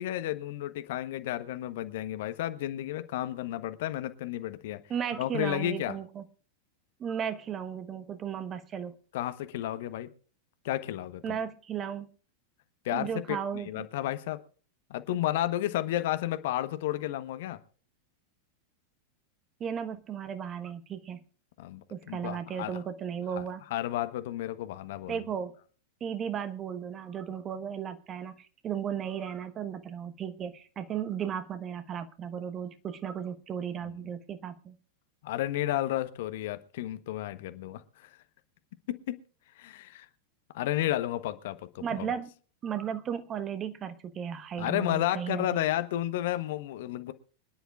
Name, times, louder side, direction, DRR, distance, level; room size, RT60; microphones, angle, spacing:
voice 1, 0.0-4.8 5.2-6.0 9.1-10.1 10.6-11.4 12.8-14.4 14.9-17.6 21.6-22.8 23.3-23.4 23.7-25.2 33.8-33.9 35.2-38.2 38.9-39.2 39.6-40.1 40.5-42.1 44.6-47.1, left 13 dB, 55° left, 1.0 m, -32 dB
voice 2, 4.9-6.2 7.0-9.0 11.2-12.1 12.9-13.9 19.6-21.2 21.9-23.6 25.1-25.5 26.0-34.7 41.8-42.3 42.6-45.6, right 8 dB, 25° right, 1.2 m, -35 dB
25.5 x 10.5 x 2.4 m
figure-of-eight pair, 90°, 0 cm